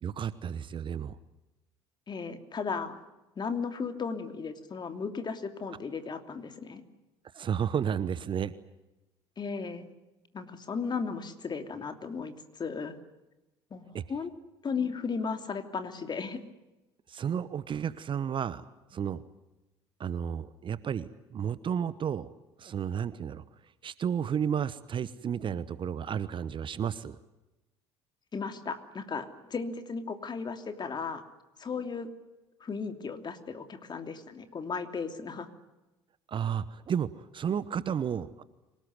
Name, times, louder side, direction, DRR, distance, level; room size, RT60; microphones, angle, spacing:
voice 1, 0.0-1.2 7.3-8.5 13.9-14.0 17.1-18.6 18.9-19.2 20.0-22.3 22.6-23.4 23.8-27.2 36.3-38.4, right 8 dB, 35° right, 17 dB, 1.1 m, -32 dB
voice 2, 2.1-3.0 3.4-6.8 9.4-9.9 10.3-13.0 13.7-14.3 14.6-16.4 28.3-31.2 31.6-32.1 32.6-35.5, left 5 dB, 30° left, 8 dB, 2.9 m, -35 dB
26.5 x 18.5 x 9.5 m, 1.0 s
figure-of-eight pair, 60°, 14 cm